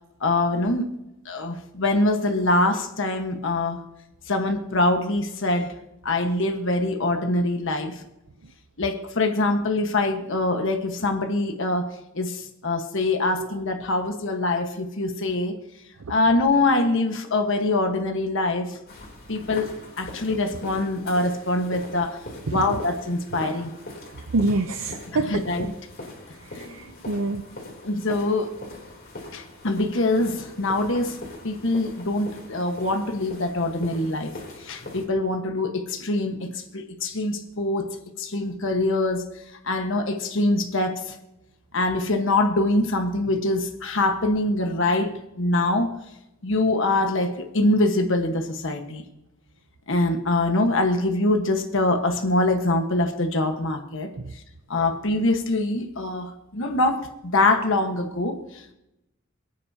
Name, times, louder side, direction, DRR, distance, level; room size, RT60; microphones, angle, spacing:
voice 1, 0.2-0.9 1.2-3.8 4.3-5.7 6.0-8.0 8.8-11.9 12.1-15.5 16.1-18.8 19.3-22.2 22.5-23.7 25.3-25.7 26.6-26.7 27.8-28.6 29.3-31.2 31.4-34.3 34.6-37.9 38.2-39.3 39.6-41.1 41.7-45.9 46.4-49.0 49.9-54.1 54.7-58.7, left 2 dB, 65° left, 4 dB, 1.4 m, -24 dB
sound 1, 18.9-35.1, left 2 dB, 50° left, 3.4 m, -41 dB
voice 2, 24.3-25.7 26.5-27.4 54.1-54.3, right 2 dB, 80° right, 7 dB, 0.7 m, -26 dB
27.5 x 9.5 x 2.8 m, 0.88 s
head